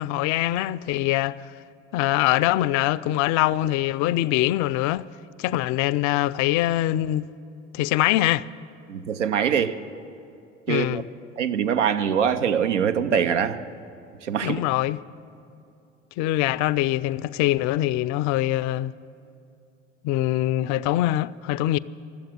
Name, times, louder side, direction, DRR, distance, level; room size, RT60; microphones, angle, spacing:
voice 1, 0.0-1.4 1.9-5.1 5.4-7.3 7.7-8.5 10.7-11.0 14.4-15.0 16.2-18.9 20.0-21.8, left 15 dB, 55° left, 0.4 m, -23 dB
voice 2, 8.9-9.8 10.7-11.0 11.4-13.6 14.2-14.6, right 8 dB, 90° right, 0.6 m, -23 dB
13.5 x 7.8 x 9.8 m
hypercardioid pair, 65°, 35 cm